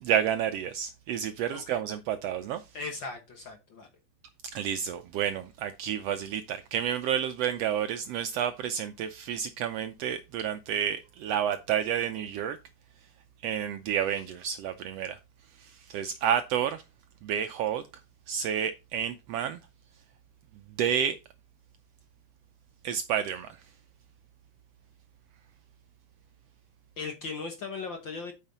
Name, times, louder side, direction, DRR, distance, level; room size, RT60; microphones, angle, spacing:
voice 1, 0.0-2.8 4.5-12.6 13.4-15.2 15.5-16.8 17.2-17.8 18.3-19.6 20.7-21.2 22.8-23.7, right 9 dB, 75° right, 1.5 m, -30 dB
voice 2, 2.7-3.9 27.0-28.3, left 4 dB, 55° left, 1.4 m, -38 dB
8.9 x 5.7 x 4.0 m
omnidirectional pair, 3.4 m